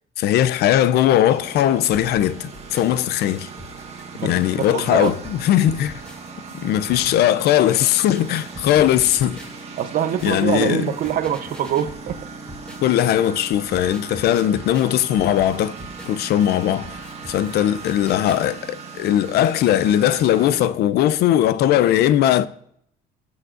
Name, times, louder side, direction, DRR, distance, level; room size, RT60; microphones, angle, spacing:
voice 1, 0.2-3.5 4.2-5.9 6.5-9.4 10.2-10.9 12.8-15.7 16.0-22.5, left 11 dB, 70° left, 0.5 m, -19 dB
Engine, 1.3-20.7, right 4 dB, 40° right, 1.7 m, -38 dB
sound 1, 2.1-13.1 13.5-18.4, equal, 5° left, 2.4 m, -43 dB
voice 2, 4.2-5.1 9.8-12.2, right 9 dB, 55° right, 0.8 m, -24 dB
15.0 x 7.2 x 2.6 m
cardioid pair, 110°, 17 cm